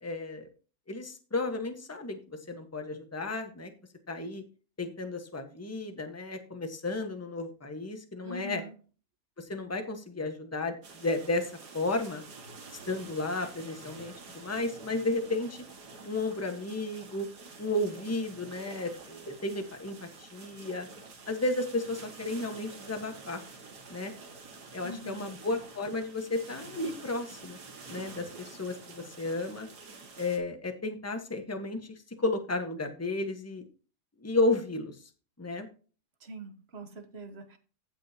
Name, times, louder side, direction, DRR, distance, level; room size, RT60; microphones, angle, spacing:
voice 1, 0.0-0.5 0.9-3.7 4.1-4.4 4.8-8.6 9.4-12.2 12.9-15.6 16.0-17.3 17.6-20.9 21.3-23.4 23.9-24.1 24.7-27.6 27.9-29.7 30.2-31.8 32.2-33.6 34.2-35.0 35.4-35.7, left 2 dB, 10° left, 6 dB, 1.2 m, -33 dB
voice 2, 8.2-8.8 24.8-25.3 36.2-37.6, right 1 dB, 40° right, 8 dB, 1.3 m, -43 dB
Sailing boat bow wave (close perspective), 10.8-30.4, right 4 dB, 80° right, 2.3 m, -48 dB
15.5 x 6.3 x 2.8 m, 0.37 s
omnidirectional pair, 1.7 m